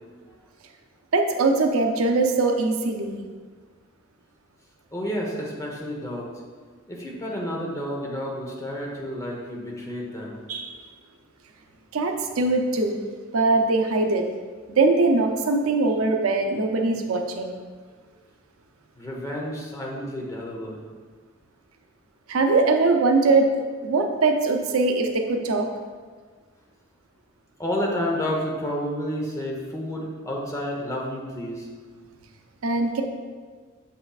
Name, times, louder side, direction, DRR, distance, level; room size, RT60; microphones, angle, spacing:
voice 1, 1.1-3.2 10.5-10.7 11.9-13.0 13.3-14.3 14.7-17.6 22.3-25.7 32.6-33.0, right 3 dB, 90° right, 4 dB, 0.6 m, -22 dB
voice 2, 4.9-6.3 6.9-10.4 19.0-20.8 27.6-31.7, equal, 15° left, -2 dB, 0.9 m, -30 dB
7.1 x 5.5 x 2.4 m, 1.5 s
head